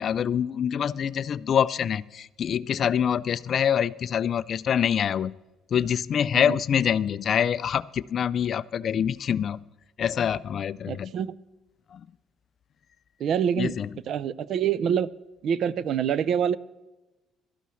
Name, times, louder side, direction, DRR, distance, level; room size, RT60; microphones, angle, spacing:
voice 1, 0.0-5.3 5.7-9.6 10.0-11.1 11.9-12.0 13.6-13.9, left 8 dB, 50° left, 19 dB, 0.3 m, -25 dB
voice 2, 10.9-11.4 13.2-13.8 14.1-15.1 15.4-16.6, right 8 dB, 60° right, 18 dB, 0.4 m, -26 dB
16.5 x 12.5 x 3.1 m, 1.1 s
cardioid pair, 110°, 0 cm